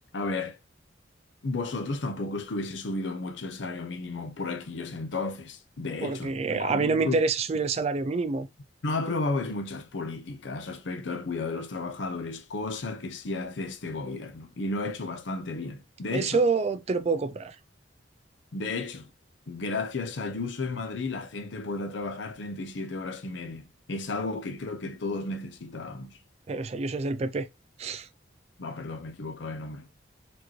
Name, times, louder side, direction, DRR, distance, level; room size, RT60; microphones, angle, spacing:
voice 1, 0.1-0.6 1.4-7.2 8.8-16.4 18.5-19.1 19.5-26.2 28.6-29.9, left 3 dB, 75° left, 0.7 m, -33 dB
voice 2, 6.0-8.5 16.1-17.6 26.5-27.5 27.8-28.1, right 4 dB, 35° right, 0.4 m, -27 dB
4.3 x 2.9 x 3.1 m
head